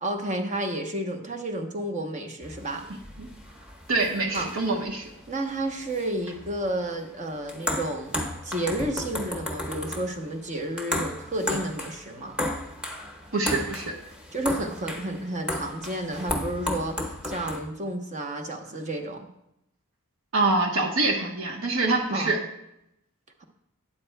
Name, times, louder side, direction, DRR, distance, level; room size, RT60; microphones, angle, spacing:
voice 1, 0.0-2.9 4.3-4.5 5.3-12.4 14.3-19.3 22.1-22.4, right 1 dB, 35° right, 5 dB, 0.9 m, -31 dB
sound 1, 2.4-17.6, left 1 dB, 5° right, 1.1 m, -34 dB
voice 2, 3.9-5.1 13.3-13.9 20.3-22.4, right 3 dB, 65° right, 2 dB, 1.1 m, -25 dB
12.5 x 8.7 x 2.2 m, 0.81 s
head